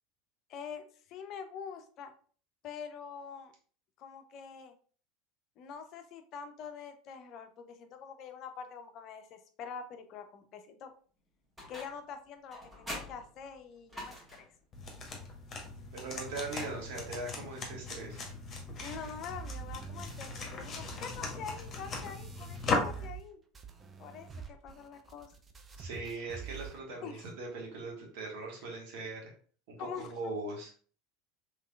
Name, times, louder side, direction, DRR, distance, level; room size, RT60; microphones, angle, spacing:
voice 1, 0.5-2.1 2.6-3.5 4.0-4.7 5.6-10.9 11.7-14.5 18.8-23.4 24.0-25.3 27.0-27.3 29.8-30.1, left 6 dB, 50° left, 7 dB, 0.5 m, -45 dB
sound 1, 11.6-12.1 12.5-14.6 16.3-17.2, equal, 10° right, 1.5 m, -46 dB
sound 2, 14.7-23.1, left 3 dB, 35° left, 1.0 m, -38 dB
voice 2, 15.9-18.2 25.8-29.3 29.7-30.7, right 3 dB, 60° right, -1 dB, 1.2 m, -40 dB
sound 3, 18.8-23.3 23.5-26.8, right 7 dB, 25° right, 0.5 m, -47 dB
3.4 x 3.1 x 2.3 m, 0.43 s
hypercardioid pair, 75°, 0 cm